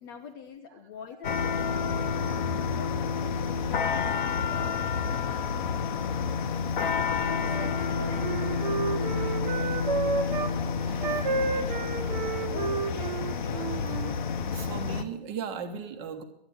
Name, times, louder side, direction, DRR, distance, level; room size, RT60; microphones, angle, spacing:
voice 1, 0.0-2.1 2.4-3.2 3.5-6.1 6.8-13.1, left 6 dB, 20° left, 6 dB, 0.6 m, -45 dB
sound 1, 1.2-15.0, left 5 dB, 50° left, 1.0 m, -29 dB
voice 2, 6.5-7.0 11.1-11.2 13.9-14.2 14.5-16.2, right 7 dB, 25° right, 6 dB, 1.3 m, -39 dB
Wind instrument woodwind instrument, 7.4-10.5 11.0-14.2, right 4 dB, 45° right, 1.3 m, -31 dB
12.5 x 9.1 x 7.8 m, 0.79 s
hypercardioid pair, 140°, 31 cm